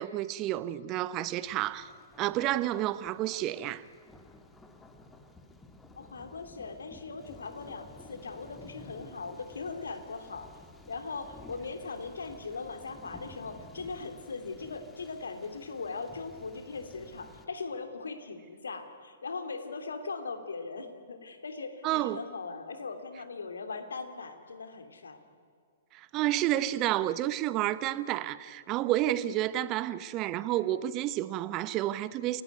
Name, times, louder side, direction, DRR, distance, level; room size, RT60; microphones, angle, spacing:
voice 1, 0.0-1.9 2.2-3.8 21.8-22.2 25.9-32.4, right 14 dB, 30° right, 1.1 m, -30 dB
Thunder, 1.5-17.5, left 2 dB, 10° left, 2.4 m, -53 dB
voice 2, 6.0-10.5 10.9-25.2, left 4 dB, 70° left, 2.9 m, -39 dB
29.0 x 18.5 x 9.3 m
figure-of-eight pair, 115°, 0 cm